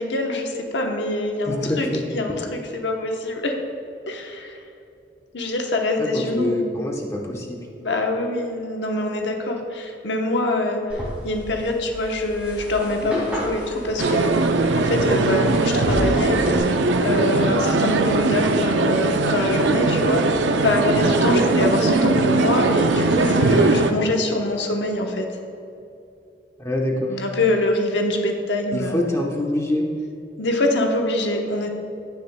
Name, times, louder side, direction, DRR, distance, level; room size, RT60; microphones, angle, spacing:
voice 1, 0.0-3.6 4.1-4.6 5.3-6.6 7.8-10.8 11.2-16.4 17.0-20.2 20.6-25.3 27.1-29.1 30.4-31.7, left 2 dB, 75° left, 2 dB, 1.0 m, -24 dB
voice 2, 1.4-2.0 6.0-7.6 21.3-21.5 26.6-27.1 28.7-29.8, left 1 dB, 15° left, 0 dB, 1.0 m, -25 dB
sound 1, 10.9-16.6, equal, 5° right, 2.2 m, -32 dB
sound 2, 14.0-23.9, right 3 dB, 85° right, 0.6 m, -20 dB
16.0 x 6.9 x 2.3 m, 2.6 s
head